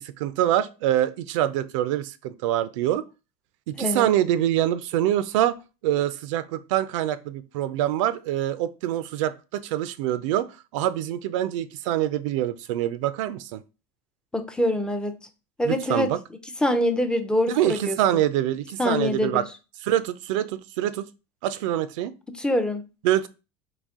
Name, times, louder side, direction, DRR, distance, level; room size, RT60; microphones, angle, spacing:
voice 1, 0.0-3.0 3.7-5.5 5.8-10.5 10.7-13.6 15.6-16.2 17.5-19.4 19.8-21.1 21.4-22.1 23.0-23.3, right 12 dB, 75° right, 0.5 m, -25 dB
voice 2, 3.8-4.1 14.3-15.2 15.6-16.1 16.6-18.2 18.8-19.4 22.4-22.9, left 1 dB, 5° left, 0.5 m, -24 dB
4.1 x 2.9 x 3.6 m
supercardioid pair, 125°, 16 cm